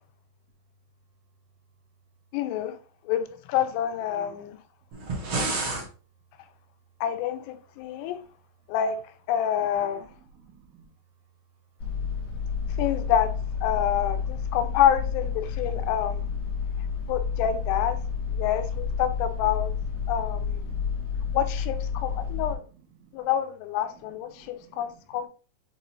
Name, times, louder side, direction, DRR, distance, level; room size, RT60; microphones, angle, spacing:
voice 1, 2.3-2.8 3.1-4.6 7.0-8.2 8.7-9.0 9.3-10.1 12.8-13.3 13.6-16.3 17.1-18.0 18.3-19.7 20.1-20.7 21.3-22.6 23.1-25.3, left 10 dB, 90° left, 3.3 m, -27 dB
voice 2, 4.0-4.4 8.0-8.1 9.6-10.9 14.4-14.6 15.5-16.0 16.4-17.1 19.4-19.5 20.8-21.4 22.0-22.6 23.0-23.3 23.9-25.3, right 7 dB, 75° right, 3.5 m, -54 dB
sound 1, 4.9-5.9, right 2 dB, 45° right, 2.1 m, -29 dB
sound 2, 11.8-22.5, left 6 dB, 50° left, 2.5 m, -30 dB
7.7 x 4.0 x 3.0 m
omnidirectional pair, 5.7 m